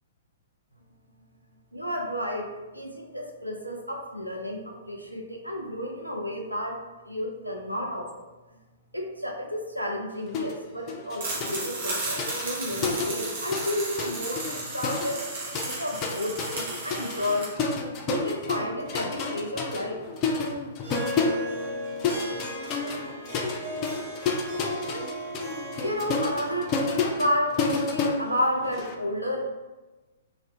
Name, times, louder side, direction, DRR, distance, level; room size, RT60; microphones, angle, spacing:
voice 1, 1.7-6.8 7.0-8.3 8.9-15.3 15.8-17.5 18.1-20.0 25.7-29.5, left 1 dB, 90° right, 0 dB, 0.4 m, -31 dB
sound 1, 10.3-10.6 10.9-13.7 14.0-28.9, left 4 dB, 25° left, 0.3 m, -30 dB
sound 2, 11.2-17.5, right 2 dB, 55° right, 0.9 m, -34 dB
Harp, 20.8-26.6, equal, 30° right, 1.1 m, -36 dB
2.4 x 2.0 x 2.6 m, 1.2 s
figure-of-eight pair, 115°, 0 cm